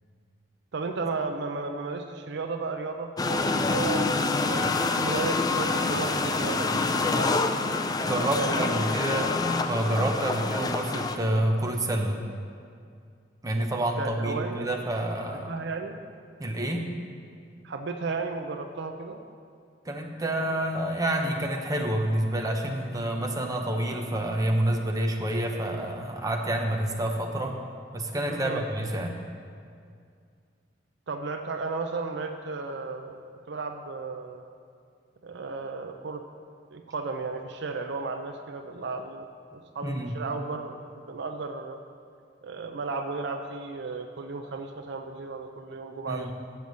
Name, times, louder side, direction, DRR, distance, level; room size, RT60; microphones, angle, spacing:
voice 1, 0.7-4.1 4.5-9.3 14.0-14.7 15.5-16.0 17.6-19.2 28.3-28.6 31.1-34.4 35.2-36.2 36.7-39.2 39.7-40.8 41.1-41.8 42.4-46.3, right 4 dB, 65° right, 6 dB, 0.5 m, -34 dB
sound 1, 3.2-11.2, left 3 dB, 20° left, 0.4 m, -26 dB
voice 2, 8.0-9.3 9.7-12.2 13.4-15.5 16.4-16.9 19.8-27.6 27.9-29.2 39.8-40.1 46.0-46.3, right 1 dB, 20° right, 2 dB, 0.8 m, -28 dB
7.9 x 7.0 x 6.2 m, 2.3 s
head